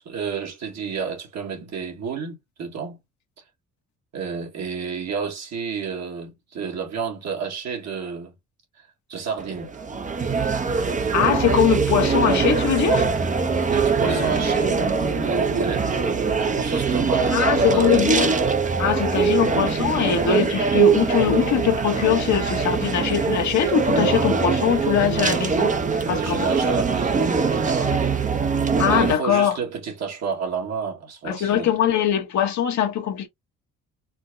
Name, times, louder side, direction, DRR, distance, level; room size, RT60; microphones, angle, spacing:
voice 1, 0.0-3.0 4.1-8.3 8.8-9.7 13.7-14.8 15.2-18.4 25.0-25.7 26.0-28.0 28.9-31.7, right 6 dB, 60° right, 1.7 m, -30 dB
sound 1, 9.4-29.1, right 5 dB, 25° right, 0.7 m, -22 dB
voice 2, 11.1-13.1 17.3-18.3 18.8-25.7 26.1-26.5 28.8-29.6 31.2-33.3, left 9 dB, 70° left, 1.1 m, -22 dB
Acoustic guitar, 14.0-19.2, left 5 dB, 35° left, 0.6 m, -38 dB
4.4 x 2.1 x 2.6 m
cardioid pair, 90°, 30 cm